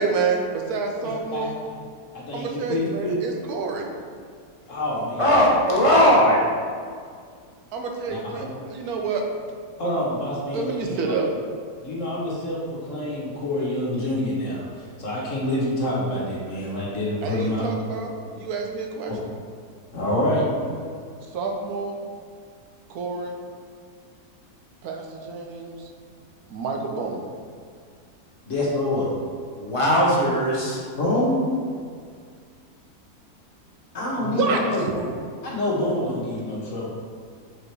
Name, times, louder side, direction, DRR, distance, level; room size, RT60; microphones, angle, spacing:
voice 1, 0.0-0.4 0.7-1.6 2.3-3.9 7.7-9.2 10.5-11.3 17.2-19.2 21.3-22.0 22.9-23.4 24.8-25.9 26.5-27.3 34.2-34.6, right 4 dB, 65° right, 2 dB, 1.2 m, -28 dB
voice 2, 2.1-3.1 4.7-5.2 6.1-6.2 8.1-8.2 9.8-11.0 11.8-17.6 19.9-20.7 28.5-29.1 31.0-31.5 33.9-34.8 35.4-36.9, left 1 dB, 50° left, -5 dB, 1.7 m, -26 dB
voice 3, 5.2-6.4 29.6-30.8, equal, 25° left, -5 dB, 0.9 m, -18 dB
5.0 x 4.8 x 4.7 m, 2.1 s
omnidirectional pair, 1.8 m